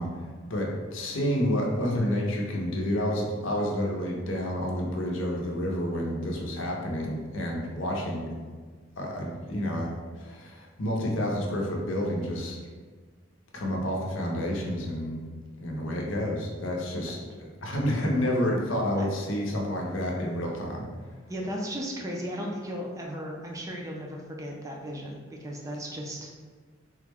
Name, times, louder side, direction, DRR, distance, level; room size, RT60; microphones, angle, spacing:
voice 1, 0.0-8.3 9.0-9.9 10.2-12.6 13.5-15.3 15.6-20.9, equal, 80° left, -1 dB, 0.7 m, -29 dB
voice 2, 21.3-26.3, equal, 15° right, -1 dB, 0.4 m, -36 dB
3.5 x 2.1 x 3.4 m, 1.5 s
head